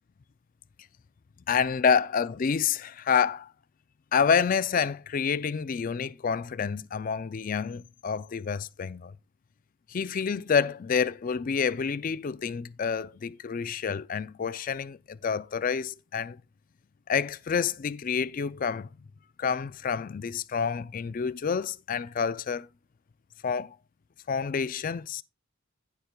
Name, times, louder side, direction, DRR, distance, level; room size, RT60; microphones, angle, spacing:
voice 1, 1.5-3.5 4.1-9.1 9.9-16.4 17.1-18.9 19.4-22.7 23.4-23.8 24.3-25.2, left 6 dB, 40° left, 0.3 m, -28 dB
16.0 x 5.8 x 2.3 m
head